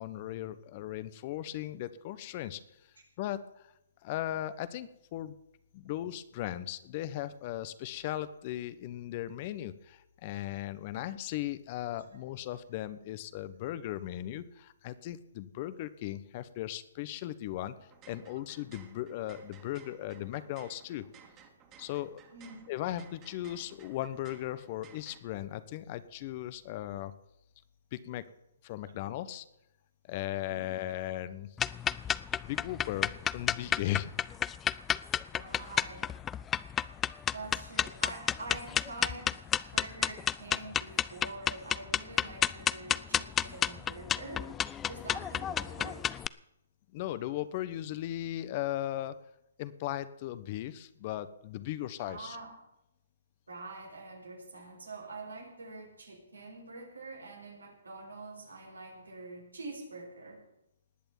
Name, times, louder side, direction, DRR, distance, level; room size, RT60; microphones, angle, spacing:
voice 1, 0.0-2.6 3.2-3.7 4.0-5.4 5.7-17.7 18.1-21.0 21.8-22.2 22.7-27.1 27.9-28.2 28.6-29.4 30.1-31.5 31.9-32.1 32.4-34.1 46.9-49.2 49.6-52.4, left 13 dB, 40° left, 14 dB, 1.1 m, -37 dB
sound 1, 17.8-25.2, right 7 dB, 25° right, 2.4 m, -58 dB
voice 2, 22.3-22.6 30.5-30.7 35.3-36.1 37.3-39.3 39.7-44.5 44.8-46.0 52.0-52.5 53.5-60.4, right 3 dB, 90° right, 1 dB, 5.6 m, -45 dB
sound 2, 31.6-46.3, left 9 dB, 15° left, 0.4 m, -31 dB
19.0 x 6.8 x 9.4 m, 0.85 s
hypercardioid pair, 140°, 0 cm